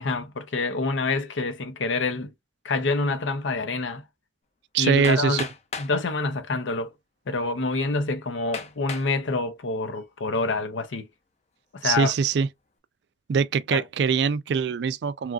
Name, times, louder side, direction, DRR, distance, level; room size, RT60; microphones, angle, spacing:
voice 1, 0.0-2.3 2.6-4.0 4.8-5.5 5.8-6.9 7.3-11.1 11.7-12.1 13.7-13.8, left 3 dB, 80° left, 0.6 m, -27 dB
voice 2, 4.7-5.5 11.8-12.5 13.3-15.3, right 6 dB, 60° right, 0.3 m, -23 dB
Hammer, 5.0-6.0 6.9-7.0 7.6-7.7 8.5-9.1 9.7-10.2, left 5 dB, 35° left, 0.4 m, -36 dB
3.1 x 2.4 x 2.3 m
head